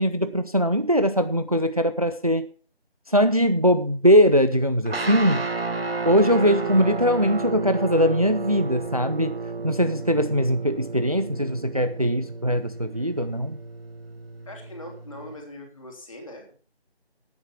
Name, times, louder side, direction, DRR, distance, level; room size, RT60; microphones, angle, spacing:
voice 1, 0.0-2.4 3.1-5.5 6.0-9.4 9.6-13.6, equal, 35° right, 0.6 m, -21 dB
sound 1, 4.9-15.4, right 3 dB, 65° right, 1.6 m, -32 dB
voice 2, 14.5-16.5, left 1 dB, 30° left, 3.1 m, -41 dB
11.0 x 9.3 x 5.9 m
figure-of-eight pair, 175°, 33 cm